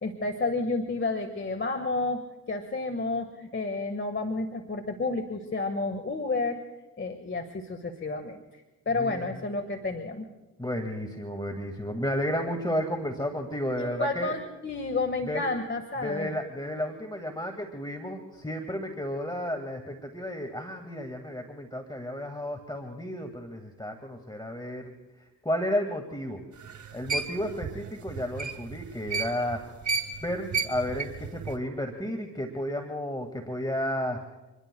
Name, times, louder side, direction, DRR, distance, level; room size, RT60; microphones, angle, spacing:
voice 1, 0.0-6.6 7.0-10.3 13.8-16.3, left 3 dB, 30° left, 6 dB, 1.7 m, -31 dB
voice 2, 9.0-9.3 10.6-14.3 15.3-15.5 16.0-24.9 25.4-26.4 26.9-29.7 30.2-34.4, equal, 10° left, 5 dB, 2.1 m, -32 dB
sound 1, 26.6-29.6 29.8-31.6, right 5 dB, 50° right, 2.2 m, -31 dB
26.5 x 21.5 x 2.3 m, 1.1 s
hypercardioid pair, 50°, 37 cm